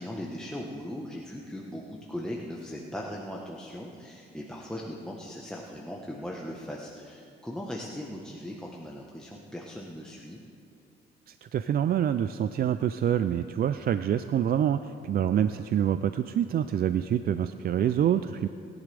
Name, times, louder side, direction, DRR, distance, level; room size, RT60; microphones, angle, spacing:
voice 1, 0.0-10.4, left 1 dB, 5° left, -1 dB, 1.2 m, -39 dB
voice 2, 11.3-18.5, right 9 dB, 50° right, 11 dB, 0.4 m, -26 dB
21.5 x 10.5 x 3.4 m, 2.4 s
cardioid pair, 90°, 20 cm